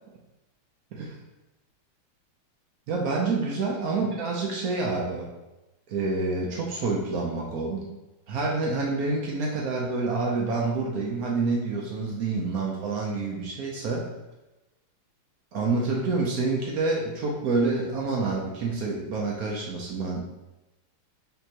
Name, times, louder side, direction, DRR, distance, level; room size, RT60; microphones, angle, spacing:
voice 1, 2.9-5.3 5.9-7.9 8.3-14.1 15.5-20.3, right 3 dB, 80° right, -2 dB, 0.8 m, -27 dB
5.6 x 3.0 x 2.8 m, 1.0 s
omnidirectional pair, 2.3 m